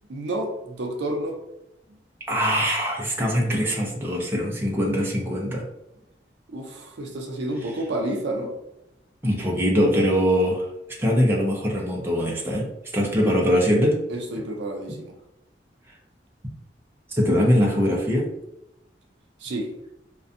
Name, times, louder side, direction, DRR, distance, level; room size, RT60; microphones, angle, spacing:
voice 1, 0.1-1.4 6.5-8.5 13.0-13.4 14.1-15.1 19.4-19.7, right 1 dB, 75° right, 2 dB, 0.5 m, -30 dB
voice 2, 2.3-5.6 9.2-10.7 11.0-12.7 12.9-14.0 17.1-18.3, equal, 15° right, -3 dB, 0.5 m, -22 dB
2.5 x 2.2 x 2.5 m, 0.86 s
head